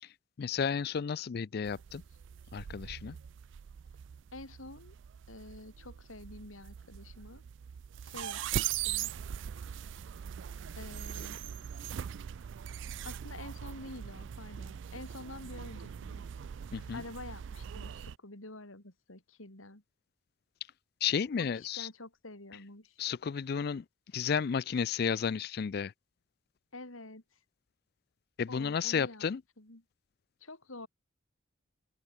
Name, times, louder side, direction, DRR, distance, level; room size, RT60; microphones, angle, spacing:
voice 1, 0.4-2.0 2.5-3.2 16.7-17.0 21.0-21.9 23.0-23.9 24.1-25.9 28.4-29.4, left 6 dB, 50° left, 0.4 m, -32 dB
sound 1, 1.6-18.2, right 9 dB, 65° right, 0.3 m, -41 dB
voice 2, 4.3-4.9 5.3-7.4 8.0-9.1 10.7-11.4 13.0-16.2 16.9-19.8 21.5-23.0 26.7-27.4 28.5-29.3 29.6-29.8 30.4-30.9, left 2 dB, 90° left, 5.0 m, -48 dB
open air
head